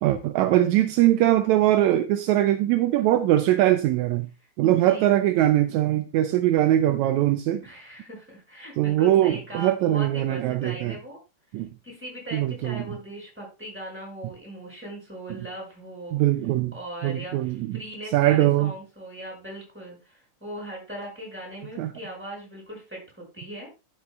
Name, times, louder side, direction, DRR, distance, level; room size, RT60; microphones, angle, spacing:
voice 1, 0.0-4.3 4.6-7.7 8.8-11.0 11.5-11.7 12.3-13.0 16.1-16.7 17.0-17.8 18.1-18.7 21.8-21.9, right 13 dB, 80° right, 1.9 m, -21 dB
voice 2, 4.6-5.1 7.6-11.2 11.8-16.2 16.7-23.7, right 1 dB, 5° right, 6.1 m, -39 dB
12.5 x 8.2 x 2.3 m
omnidirectional pair, 3.4 m